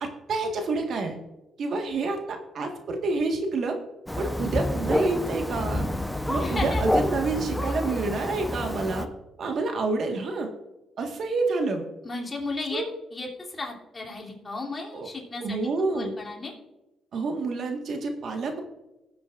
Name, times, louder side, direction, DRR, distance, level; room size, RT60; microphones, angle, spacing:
voice 1, 0.0-1.2 1.6-3.8 4.2-5.9 6.3-9.1 9.4-10.5 11.0-11.9 12.7-12.9 14.9-15.1 15.4-16.1 17.1-18.6, right 3 dB, 60° right, 4 dB, 1.5 m, -28 dB
Thunder, 4.1-9.0, left 1 dB, 5° left, 0.8 m, -28 dB
voice 2, 6.4-6.8 12.0-12.8 13.1-15.6 15.9-16.5, left 3 dB, 30° left, -2 dB, 3.0 m, -34 dB
19.0 x 8.1 x 2.5 m, 1.0 s
cardioid pair, 90°, 0 cm